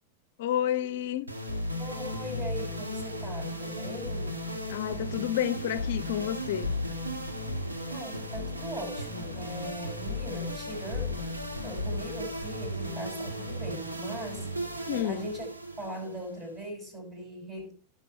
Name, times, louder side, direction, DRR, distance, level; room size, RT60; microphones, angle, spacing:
voice 1, 0.4-1.3 4.7-6.7 14.9-15.3, left 11 dB, 55° left, 0.5 m, -30 dB
sound 1, 1.3-16.7, left 1 dB, 80° right, 2.1 m, -35 dB
voice 2, 1.8-4.4 7.9-14.5 14.9-15.5 15.8-17.7, equal, 30° right, 6.3 m, -40 dB
18.0 x 6.7 x 2.3 m
figure-of-eight pair, 90°, 0 cm